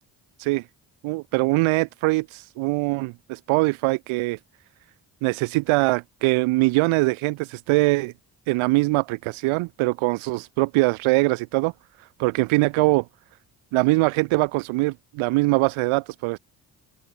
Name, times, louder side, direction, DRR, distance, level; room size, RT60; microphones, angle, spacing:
voice 1, 1.0-4.4 5.2-8.1 8.5-11.7 12.2-13.1 13.7-16.4, right 23 dB, 90° right, 3.5 m, -22 dB
open air
hypercardioid pair, 40°, 47 cm